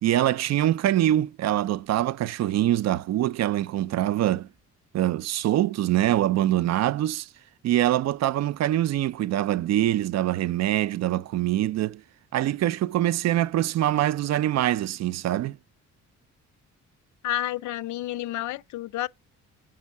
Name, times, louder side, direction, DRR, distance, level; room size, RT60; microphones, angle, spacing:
voice 1, 0.0-4.5 4.9-7.3 7.6-12.0 12.3-15.6, right 13 dB, 60° right, 0.4 m, -24 dB
voice 2, 17.2-19.1, left 14 dB, 70° left, 0.4 m, -30 dB
7.3 x 5.5 x 5.4 m
cardioid pair, 90°, 30 cm